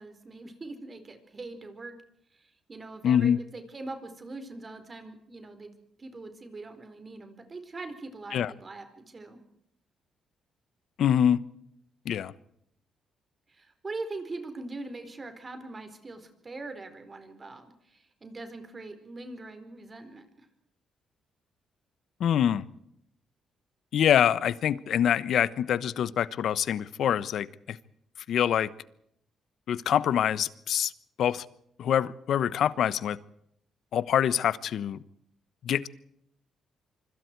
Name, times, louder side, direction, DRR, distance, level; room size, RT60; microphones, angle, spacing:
voice 1, 0.0-2.0 2.3-5.7 6.0-9.4 13.5-20.5, right 2 dB, 30° right, 8 dB, 4.5 m, -42 dB
voice 2, 3.0-3.4 8.3-8.5 11.0-11.4 12.0-12.3 22.2-22.6 23.9-27.8 28.3-28.7 29.7-30.9 31.2-31.4 31.8-33.2 33.9-35.0 35.6-35.9, left 9 dB, 70° left, 17 dB, 1.1 m, -25 dB
25.5 x 25.5 x 4.7 m, 0.72 s
cardioid pair, 105°, 0 cm